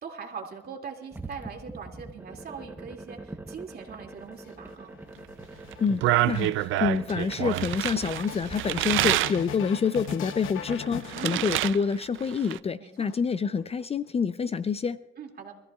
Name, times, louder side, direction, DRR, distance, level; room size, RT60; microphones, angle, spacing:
voice 1, 0.0-5.0 11.1-11.7 12.8-12.9 15.2-15.5, right 6 dB, 50° right, 1 dB, 2.5 m, -41 dB
sound 1, 1.1-8.6, right 2 dB, 10° right, 1.0 m, -44 dB
sound 2, 4.2-12.2 13.0-13.8, left 8 dB, 85° left, 0.9 m, -41 dB
sound 3, 5.7-9.4 9.9-11.8 12.0-12.6, right 15 dB, 85° right, 0.5 m, -27 dB
voice 2, 5.8-15.0, left 5 dB, 30° left, 14 dB, 0.5 m, -27 dB
25.5 x 14.0 x 2.4 m, 1.0 s
cardioid pair, 90°, 20 cm